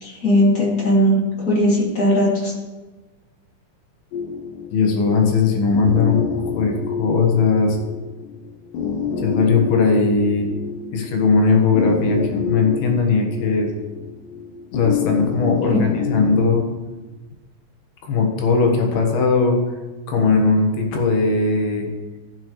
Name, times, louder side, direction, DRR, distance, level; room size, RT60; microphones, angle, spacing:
voice 1, 0.0-2.5 15.7-15.8, equal, 30° left, -5 dB, 2.5 m, -18 dB
sound 1, 4.1-16.5, left 6 dB, 75° left, 2.5 m, -28 dB
voice 2, 4.7-7.8 9.2-10.5 10.9-13.7 14.7-16.7 18.0-19.6 20.1-21.9, left 4 dB, 90° left, 2 dB, 3.4 m, -19 dB
15.0 x 7.2 x 3.1 m, 1.2 s
omnidirectional pair, 4.3 m